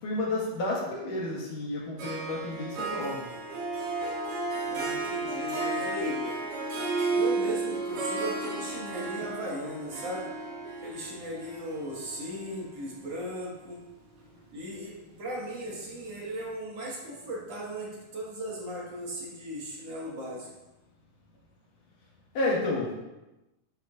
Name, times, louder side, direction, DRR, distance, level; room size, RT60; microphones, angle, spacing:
voice 1, 0.0-3.3 22.3-23.0, left 2 dB, 70° left, -4 dB, 3.3 m, -31 dB
Harp, 2.0-13.4, right 3 dB, 75° right, 2.9 m, -33 dB
voice 2, 4.6-6.3 7.1-10.3 10.8-13.8 14.5-20.5, equal, 50° right, -5 dB, 2.6 m, -37 dB
9.6 x 6.2 x 2.6 m, 1.0 s
omnidirectional pair, 3.9 m